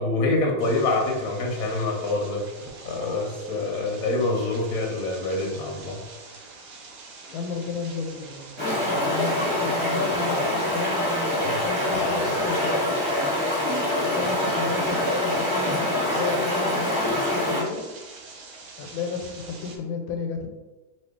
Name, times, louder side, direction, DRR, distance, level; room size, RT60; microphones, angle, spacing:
voice 1, 0.0-2.5 2.8-6.0 11.4-12.2 14.2-14.3, left 2 dB, 60° left, 0 dB, 1.0 m, -26 dB
sound 1, 0.6-19.8, right 3 dB, 75° right, 1.3 m, -44 dB
voice 2, 7.3-10.9 11.5-12.9 13.9-17.8 18.8-20.5, left 5 dB, 85° left, 4 dB, 1.4 m, -33 dB
Stream, 8.6-17.6, left 1 dB, 15° right, 1.1 m, -25 dB
3.0 x 2.9 x 3.5 m, 1.1 s
omnidirectional pair, 2.1 m